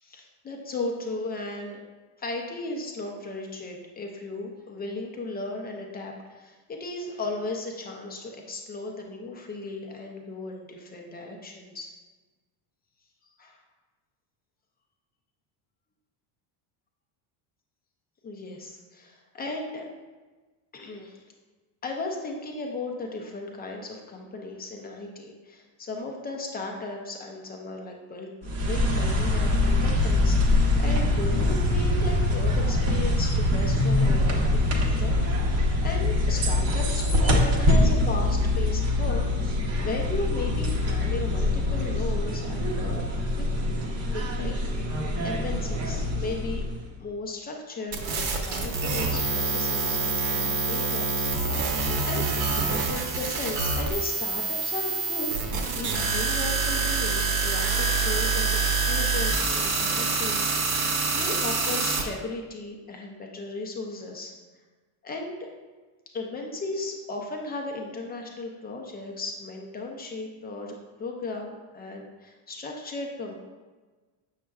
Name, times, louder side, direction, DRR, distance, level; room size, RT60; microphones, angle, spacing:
voice 1, 0.0-1.8 2.2-11.9 13.4-13.6 18.2-19.9 20.7-21.2 21.8-34.4 34.7-43.5 44.1-44.6 44.9-46.6 47.0-51.8 52.0-52.2 52.6-55.3 55.7-60.8 61.1-64.3 65.0-65.5 66.1-73.3, left 2 dB, 20° left, 1 dB, 0.4 m, -36 dB
sound 1, 28.4-46.9, left 2 dB, 30° right, 0.8 m, -24 dB
sound 2, 47.9-62.0, right 4 dB, 65° right, 1.1 m, -26 dB
7.3 x 6.4 x 2.3 m, 1.3 s
cardioid pair, 160°, 48 cm